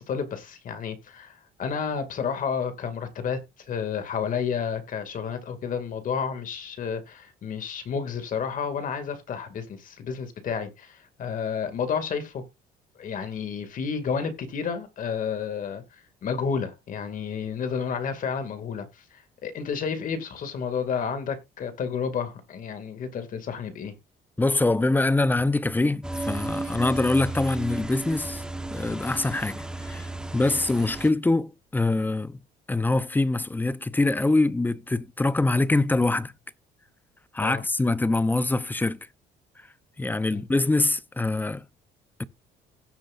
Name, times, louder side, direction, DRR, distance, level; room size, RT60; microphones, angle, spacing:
voice 1, 0.0-3.4 3.7-12.4 13.0-15.8 16.2-23.9 37.4-37.6 40.3-40.4, left 6 dB, 50° left, 2.2 m, -31 dB
voice 2, 24.4-28.4 28.7-32.4 32.7-36.3 37.3-39.0 40.0-41.6 42.2-42.3, left 2 dB, 10° left, 0.6 m, -24 dB
sound 1, 26.0-31.1, right 2 dB, 5° right, 1.1 m, -34 dB
16.5 x 7.5 x 2.5 m
cardioid pair, 110°, 17 cm